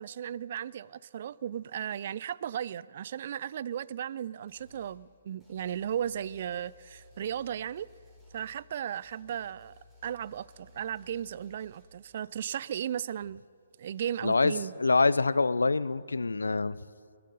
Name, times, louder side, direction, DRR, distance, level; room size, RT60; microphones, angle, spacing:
voice 1, 0.0-7.9 8.3-9.7 10.0-13.4 13.8-14.7, right 9 dB, 50° right, 0.3 m, -35 dB
sound 1, 4.5-5.0 5.4-11.9, left 2 dB, 10° right, 5.3 m, -58 dB
voice 2, 14.2-16.8, left 3 dB, 80° left, 0.5 m, -25 dB
21.0 x 11.5 x 5.4 m
figure-of-eight pair, 135°, 0 cm